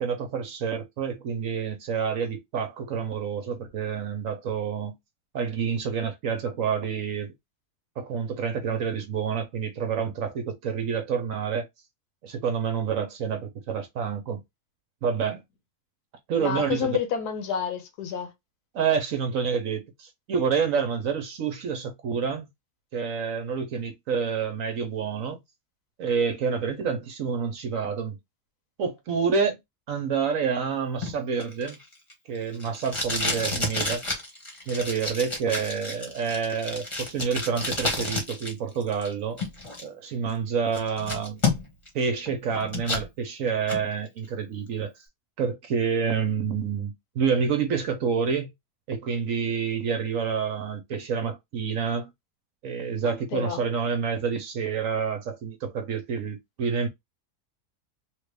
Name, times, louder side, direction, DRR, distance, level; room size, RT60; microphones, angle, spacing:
voice 1, 0.0-5.0 5.3-7.3 8.0-11.7 12.2-14.4 15.0-15.4 16.3-17.0 18.7-22.5 22.9-25.4 26.0-28.2 28.8-29.6 29.9-31.8 32.3-34.0 34.7-39.4 39.8-41.4 41.9-44.9 45.4-48.5 48.9-52.1 52.6-56.9, right 6 dB, 60° right, 1.0 m, -28 dB
voice 2, 16.4-18.3 53.0-53.6, left 8 dB, 75° left, 1.4 m, -29 dB
Packing tape duct tape, 31.0-38.5 38.8-39.8 40.3-40.4 40.7-41.9 42.3-43.1 43.5-43.8, left 2 dB, 20° left, 1.0 m, -30 dB
3.2 x 2.4 x 3.2 m
omnidirectional pair, 1.7 m